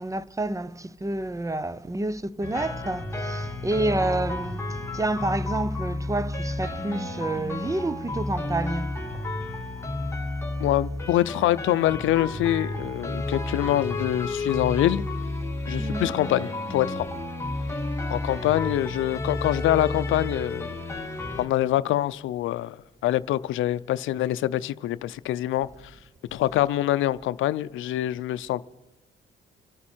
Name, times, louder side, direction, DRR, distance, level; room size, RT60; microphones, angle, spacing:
voice 1, 0.0-9.2 15.8-16.1, right 2 dB, 15° right, 0.6 m, -29 dB
sound 1, 2.4-21.5, left 2 dB, 15° left, 2.2 m, -31 dB
voice 2, 10.6-15.0 15.7-17.1 18.1-20.8 21.4-22.8 23.0-26.0 26.3-28.6, left 14 dB, 80° left, 0.5 m, -25 dB
26.0 x 9.6 x 4.4 m
cardioid pair, 90°, 20 cm